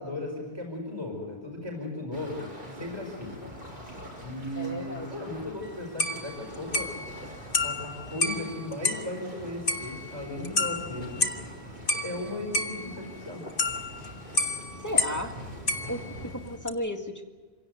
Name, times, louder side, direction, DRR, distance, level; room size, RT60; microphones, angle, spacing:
voice 1, 0.0-3.4 4.2-6.9 7.6-11.3 12.0-13.4, left 1 dB, 25° right, 0 dB, 5.2 m, -36 dB
sound 1, 2.1-16.6, equal, 55° right, 5.9 m, -44 dB
voice 2, 4.6-5.1 14.8-15.3 15.9-16.0 16.3-17.3, left 1 dB, 15° left, 4 dB, 1.9 m, -33 dB
sound 2, 5.6-5.7 6.0-9.2 9.7-11.5 11.9-15.3 15.7-16.3 16.7-16.8, left 2 dB, 55° left, 1.5 m, -31 dB
26.5 x 17.0 x 9.3 m, 1.4 s
omnidirectional pair, 1.1 m